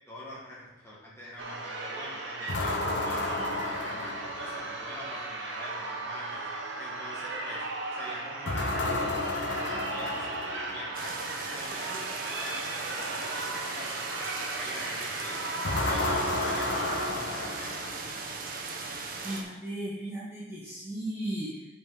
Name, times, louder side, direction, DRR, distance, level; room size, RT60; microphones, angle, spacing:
voice 1, 0.1-6.5 6.8-7.6 7.9-11.2 11.5-15.4 15.8-18.0, left 1 dB, 15° left, -6 dB, 2.1 m, -44 dB
sound 1, 1.4-17.1, right 2 dB, 85° right, 1.1 m, -36 dB
sound 2, 2.5-4.8 8.4-11.0 15.6-18.3, left 2 dB, 75° left, 0.9 m, -32 dB
sound 3, 10.9-19.4, right 3 dB, 50° right, 1.0 m, -38 dB
voice 2, 19.2-21.7, right 1 dB, 15° right, -8 dB, 1.4 m, -36 dB
8.1 x 5.0 x 5.1 m, 1.0 s
head